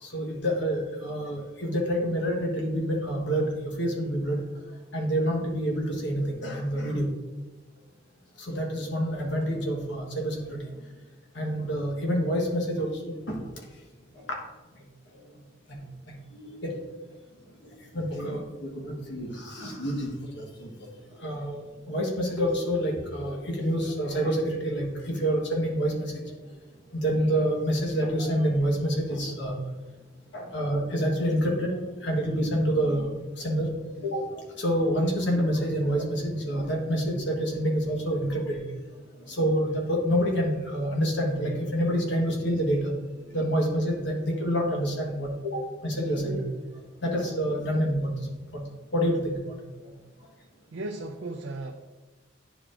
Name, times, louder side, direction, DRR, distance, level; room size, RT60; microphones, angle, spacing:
voice 1, 0.0-4.4 4.9-7.1 8.4-10.6 11.3-13.4 14.3-14.4 15.7-15.8 16.3-16.8 17.9-20.9 21.2-26.2 26.9-29.5 30.3-33.7 34.0-38.7 39.3-42.9 43.3-46.5 47.0-48.3 48.9-49.6, equal, 65° left, -1 dB, 1.3 m, -27 dB
Keyboard (musical), 22.4-25.6, right 1 dB, 10° right, 0.5 m, -42 dB
voice 2, 50.7-51.7, right 2 dB, 85° right, 2 dB, 0.5 m, -35 dB
10.0 x 4.8 x 2.5 m, 1.2 s
head